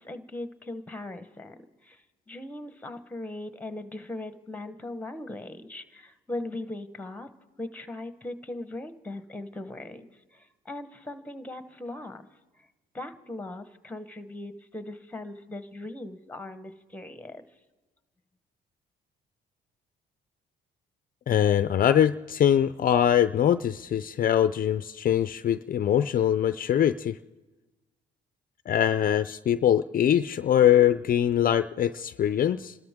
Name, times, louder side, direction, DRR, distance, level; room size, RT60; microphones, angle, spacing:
voice 1, 0.0-7.3 7.6-12.3 12.6-12.7 12.9-17.4, left 2 dB, 10° left, 10 dB, 1.1 m, -39 dB
voice 2, 21.3-27.2 28.7-32.8, left 10 dB, 45° left, 12 dB, 0.4 m, -23 dB
30.0 x 13.0 x 3.6 m, 1.2 s
cardioid pair, 90°, 20 cm